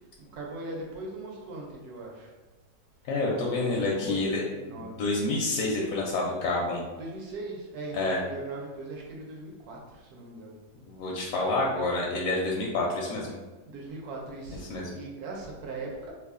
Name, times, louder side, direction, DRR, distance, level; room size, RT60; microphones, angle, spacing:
voice 1, 0.2-2.3 3.4-5.3 7.0-10.5 13.6-16.1, right 2 dB, 65° right, -1 dB, 1.2 m, -40 dB
voice 2, 3.1-4.4 4.8-6.8 7.9-8.2 10.9-13.3 14.7-14.9, left 2 dB, 70° left, -3 dB, 0.8 m, -28 dB
3.0 x 2.3 x 3.5 m, 1.2 s
omnidirectional pair, 1.8 m